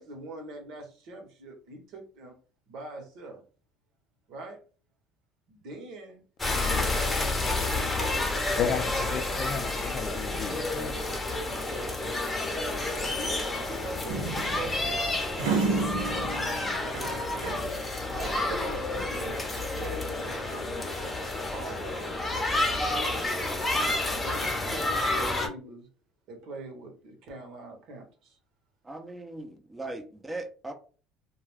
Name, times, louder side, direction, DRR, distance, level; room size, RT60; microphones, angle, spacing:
voice 1, 0.0-2.4 2.7-3.4 4.3-4.6 5.5-6.2 6.7-8.4 13.0-17.2 18.1-21.0 21.5-22.2 22.9-23.5 24.1-25.9 26.3-28.4, right 2 dB, 70° right, 1.0 m, -43 dB
sound 1, 6.4-25.5, left 2 dB, 20° left, 0.7 m, -30 dB
voice 2, 6.5-6.9 8.6-10.9, left 7 dB, 55° left, 0.4 m, -33 dB
sound 2, 14.1-17.8 18.1-19.3, right 4 dB, 90° right, 0.7 m, -32 dB
voice 3, 28.8-30.7, right 2 dB, 15° right, 0.6 m, -39 dB
2.3 x 2.2 x 3.3 m
supercardioid pair, 105°, 0 cm